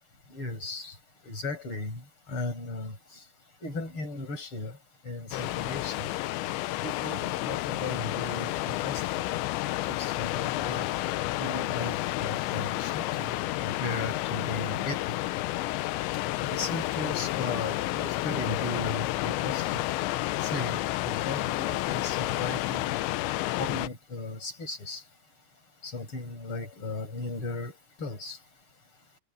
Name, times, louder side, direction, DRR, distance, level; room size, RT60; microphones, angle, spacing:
voice 1, 0.3-1.0 1.2-2.0 2.3-3.0 3.6-4.8 5.0-6.1 6.8-9.0 9.9-10.9 11.4-13.3 13.6-15.2 16.4-19.9 20.4-22.9 23.6-25.0 25.8-28.4, left 2 dB, 25° left, 6.9 m, -36 dB
sound 1, 5.3-23.9, left 17 dB, 80° left, 2.9 m, -30 dB
omnidirectional pair, 5.6 m